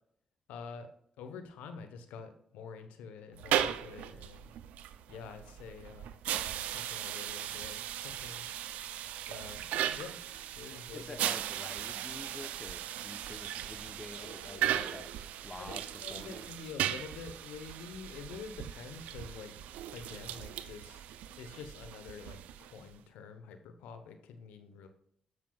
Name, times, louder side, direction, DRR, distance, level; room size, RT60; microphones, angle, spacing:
voice 1, 0.5-0.9 1.2-4.5 5.1-6.1 6.5-8.8 9.3-9.7 9.9-10.2 10.5-11.2 14.2-14.8 15.6-19.6 19.9-21.1 21.4-24.9, left 5 dB, 90° left, 8 dB, 0.9 m, -47 dB
sound 1, 3.3-22.9, right 11 dB, 85° right, 0.4 m, -37 dB
voice 2, 10.9-15.1 15.4-15.8 16.1-16.5, left 3 dB, 30° left, 11 dB, 0.9 m, -47 dB
9.6 x 7.4 x 2.3 m, 0.66 s
supercardioid pair, 55°, 2 cm